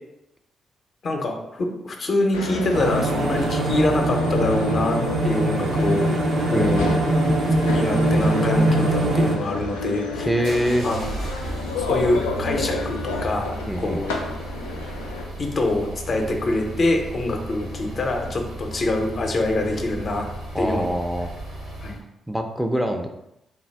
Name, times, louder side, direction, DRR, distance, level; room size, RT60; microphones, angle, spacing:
voice 1, 1.0-6.2 6.5-7.0 7.7-10.3 10.8-11.0 11.8-13.5 13.8-14.2 15.4-20.3 20.6-20.9 21.8-22.0, left 2 dB, 55° left, 3 dB, 0.6 m, -25 dB
sound 1, 2.3-15.2, left 3 dB, 90° left, 0.3 m, -30 dB
sound 2, 2.7-9.4, right 1 dB, 60° right, 0.5 m, -22 dB
voice 2, 6.5-6.9 10.3-10.9 13.7-14.0 20.5-21.3 22.3-23.1, equal, 5° right, 4 dB, 0.4 m, -24 dB
sound 3, 9.5-22.0, right 1 dB, 80° right, 1.1 m, -35 dB
3.4 x 2.2 x 3.3 m, 0.86 s
hypercardioid pair, 40°, 0 cm